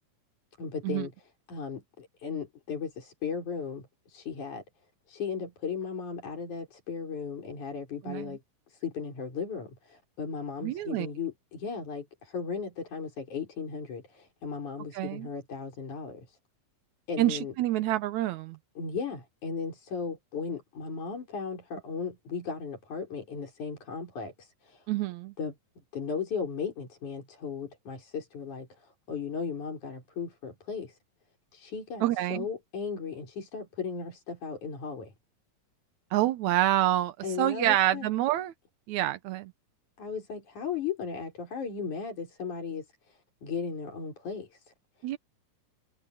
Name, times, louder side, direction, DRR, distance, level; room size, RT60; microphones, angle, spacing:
voice 1, 0.6-4.6 5.1-8.4 8.7-16.4 17.1-17.5 18.8-24.9 25.4-25.5 25.9-31.0 31.5-35.1 37.2-38.1 40.0-44.6, left 6 dB, 55° left, 6.6 m, -36 dB
voice 2, 8.1-8.4 10.6-11.1 14.9-15.3 17.2-18.6 24.9-25.3 32.0-32.5 36.1-38.5 38.9-39.5 45.0-45.2, right 14 dB, 75° right, 1.7 m, -27 dB
omnidirectional pair, 4.2 m